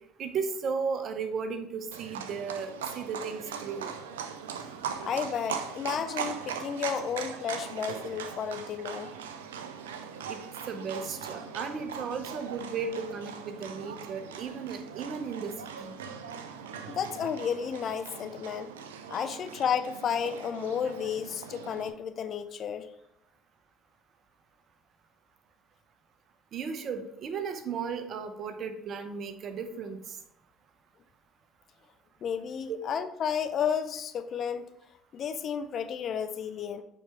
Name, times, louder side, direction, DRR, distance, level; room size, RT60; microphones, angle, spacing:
voice 1, 0.2-3.9 10.3-10.4 10.7-15.5 15.8-15.9 26.5-30.0 32.7-32.8, right 5 dB, 50° right, 7 dB, 0.8 m, -35 dB
Livestock farm animals working animals, 1.9-21.9, right 7 dB, 80° right, 0.5 m, -40 dB
voice 2, 5.0-9.1 16.9-18.7 19.1-22.9 32.2-34.7 35.1-36.8, left 7 dB, 50° left, 10 dB, 0.5 m, -32 dB
7.2 x 4.8 x 3.4 m, 0.81 s
figure-of-eight pair, 55°, 0 cm